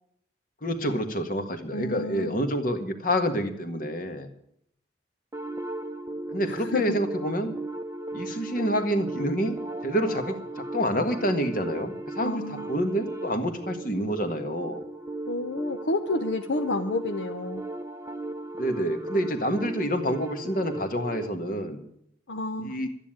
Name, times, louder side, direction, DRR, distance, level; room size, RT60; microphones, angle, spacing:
voice 1, 0.6-4.3 6.3-7.5 8.1-10.4 10.7-14.8 18.6-21.8 22.6-22.9, equal, 45° left, 7 dB, 1.6 m, -28 dB
voice 2, 1.7-2.4 6.4-6.9 12.2-12.7 15.3-17.6 22.3-22.7, left 2 dB, 75° left, 7 dB, 0.8 m, -30 dB
sound 1, 5.3-21.3, right 2 dB, 15° right, 0.7 m, -36 dB
12.5 x 9.8 x 8.9 m, 0.71 s
head